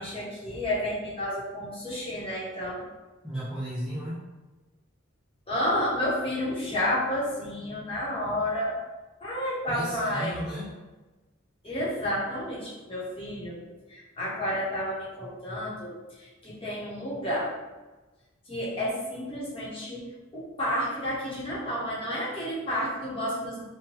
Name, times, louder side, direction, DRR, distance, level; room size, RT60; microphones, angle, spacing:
voice 1, 0.0-2.8 5.5-8.7 9.2-10.4 11.6-13.6 13.9-15.9 16.2-17.5 18.5-20.0 20.3-23.6, left 1 dB, 30° left, -7 dB, 0.9 m, -30 dB
voice 2, 3.2-4.2 9.7-10.7, equal, 5° right, -8 dB, 0.4 m, -34 dB
3.0 x 2.2 x 3.0 m, 1.2 s
head